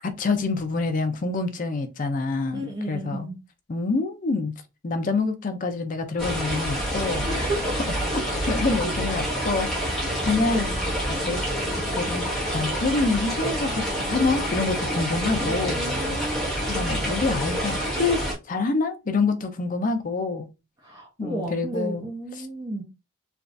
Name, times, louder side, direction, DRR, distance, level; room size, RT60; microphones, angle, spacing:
voice 1, 0.0-3.3 3.7-4.5 4.8-7.3 8.1-11.4 11.8-12.3 12.5-15.9 16.7-20.5 21.2-22.0 22.3-22.5, left 3 dB, 40° left, 0.4 m, -27 dB
voice 2, 2.5-3.4 7.3-7.8 15.5-16.5 20.8-22.8, right 1 dB, 20° right, 0.6 m, -32 dB
sound 1, 6.2-18.3, equal, ahead, 0.9 m, -27 dB
3.3 x 2.4 x 2.5 m
head